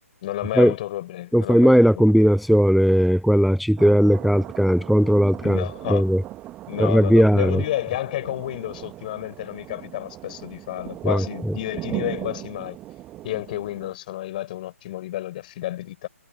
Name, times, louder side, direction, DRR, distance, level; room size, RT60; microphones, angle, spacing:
voice 1, 0.2-1.7 5.4-6.1 6.7-12.8 13.2-16.1, left 14 dB, 35° left, 6.3 m, -31 dB
voice 2, 1.3-5.6 5.9-6.2 6.8-7.6 11.0-11.2, equal, ahead, 0.4 m, -17 dB
sound 1, 3.8-13.9, right 14 dB, 15° right, 1.6 m, -38 dB
figure-of-eight pair, 135°, 8 cm